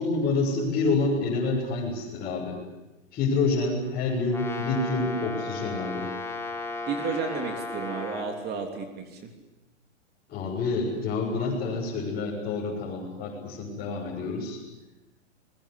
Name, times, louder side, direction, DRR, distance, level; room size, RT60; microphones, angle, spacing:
voice 1, 0.0-2.6 3.1-6.1 10.3-14.6, left 3 dB, 25° left, -5 dB, 7.0 m, -28 dB
Brass instrument, 4.3-8.4, left 3 dB, 5° left, 3.1 m, -35 dB
voice 2, 6.9-9.3, right 5 dB, 25° right, 5 dB, 3.2 m, -32 dB
29.0 x 21.5 x 8.5 m, 1.0 s
hypercardioid pair, 135°, 38 cm